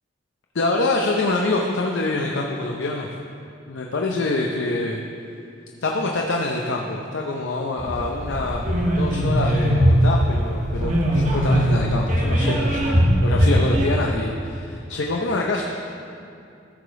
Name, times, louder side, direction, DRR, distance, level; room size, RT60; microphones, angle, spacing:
voice 1, 0.5-3.1 3.7-5.0 5.8-8.6 9.0-15.6, left 2 dB, 85° left, 0 dB, 0.6 m, -25 dB
sound 1, 7.8-13.9, equal, 45° right, 1.2 m, -20 dB
14.0 x 5.0 x 4.7 m, 2.6 s
head